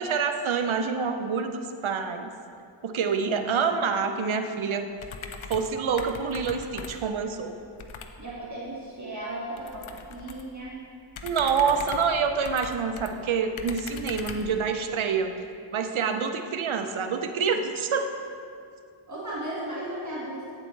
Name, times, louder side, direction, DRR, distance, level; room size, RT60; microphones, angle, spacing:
voice 1, 0.0-2.3 2.8-4.9 5.5-7.5 11.2-15.3 15.7-18.1, right 5 dB, 70° right, 7 dB, 0.6 m, -27 dB
sound 1, 5.0-5.7 6.0-7.1 7.8-8.1 9.5-10.5 11.1-13.1 13.6-14.5, left 5 dB, 70° left, 0.7 m, -40 dB
voice 2, 8.2-10.8 11.2-11.7 19.1-20.5, right 1 dB, 35° right, -7 dB, 1.6 m, -36 dB
9.0 x 7.5 x 3.2 m, 2.4 s
wide cardioid pair, 60°, 50 cm